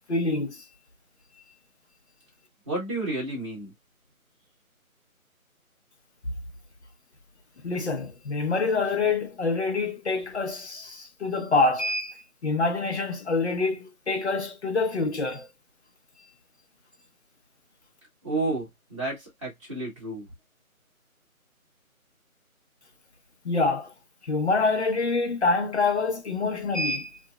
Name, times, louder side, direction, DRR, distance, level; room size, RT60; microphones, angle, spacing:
voice 1, 0.1-0.6 7.6-15.5 23.4-23.9 24.3-27.2, left 3 dB, 50° left, 0.9 m, -26 dB
voice 2, 2.6-3.7 18.2-20.3, right 2 dB, 20° right, 1.3 m, -31 dB
2.9 x 2.7 x 2.2 m
figure-of-eight pair, 170°, 43 cm